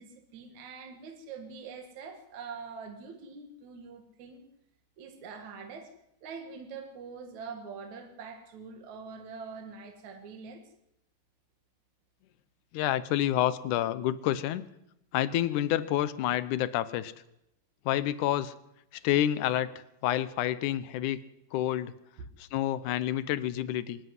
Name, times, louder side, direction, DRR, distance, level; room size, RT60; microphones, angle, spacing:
voice 1, 0.0-4.4 5.0-5.9 6.2-10.7 22.2-22.3, right 5 dB, 60° right, 5 dB, 2.9 m, -44 dB
voice 2, 12.7-14.6 15.1-17.1 17.9-18.5 19.0-19.7 20.0-21.2 21.5-21.9 22.4-24.0, left 12 dB, 70° left, 15 dB, 2.1 m, -28 dB
24.5 x 11.5 x 9.7 m, 0.83 s
omnidirectional pair, 4.1 m